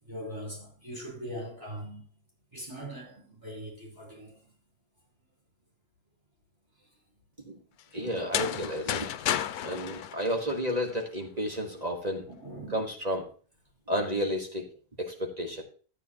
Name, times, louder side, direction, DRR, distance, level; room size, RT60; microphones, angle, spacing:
voice 1, 0.0-2.0 2.5-4.4 9.4-9.7 10.4-10.5 12.3-12.8, equal, 15° right, 4.6 m, -41 dB
voice 2, 7.9-9.1 9.6-12.2 12.7-13.3 13.9-14.6 15.0-15.6, equal, 30° right, 1.4 m, -31 dB
sound 1, 8.1-11.0, left 11 dB, 90° left, 1.1 m, -32 dB
12.0 x 8.9 x 2.8 m
omnidirectional pair, 1.5 m